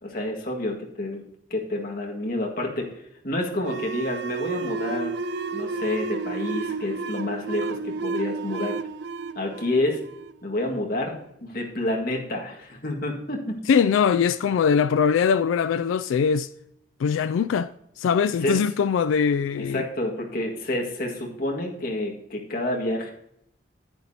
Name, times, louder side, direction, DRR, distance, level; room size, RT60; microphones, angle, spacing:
voice 1, 0.0-1.2 1.5-2.9 3.2-5.2 5.5-8.8 9.4-10.0 10.4-13.7 18.4-18.7 19.5-23.1, left 1 dB, 45° left, 1.8 m, -29 dB
sound 1, 3.6-10.8, right 4 dB, 55° right, 0.4 m, -31 dB
voice 2, 13.7-16.5 17.0-17.7 18.0-19.8, left 6 dB, 85° left, 0.3 m, -22 dB
10.0 x 9.1 x 2.8 m
head